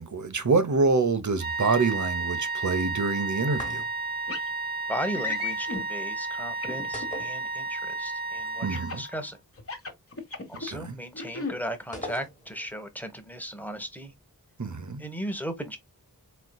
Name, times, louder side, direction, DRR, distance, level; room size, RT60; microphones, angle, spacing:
voice 1, 0.0-3.8 8.6-9.0 10.7-11.0 14.6-15.0, right 4 dB, 55° right, 0.9 m, -26 dB
sound 1, 1.4-9.3, right 3 dB, 30° right, 0.8 m, -32 dB
sound 2, 3.5-4.2 6.9-8.0 8.2-8.3 11.9-12.7, left 2 dB, 20° left, 1.4 m, -40 dB
sound 3, 4.3-4.5 5.1-5.8 6.6-7.2 8.7-9.1 9.6-10.7 11.1-11.5, left 3 dB, 40° left, 1.3 m, -34 dB
voice 2, 4.9-9.4 10.5-14.1 15.0-15.8, equal, 5° left, 1.2 m, -36 dB
4.4 x 3.8 x 2.3 m
wide cardioid pair, 75°, 36 cm